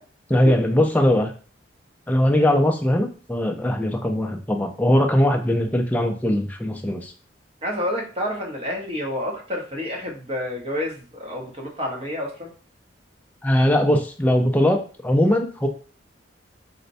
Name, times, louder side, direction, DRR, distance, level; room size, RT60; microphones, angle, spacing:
voice 1, 0.3-1.3 2.1-7.1 13.4-15.7, left 1 dB, 10° left, 3 dB, 0.4 m, -20 dB
voice 2, 7.6-12.5, left 1 dB, 30° right, 0 dB, 0.8 m, -29 dB
4.1 x 2.1 x 2.6 m, 0.38 s
head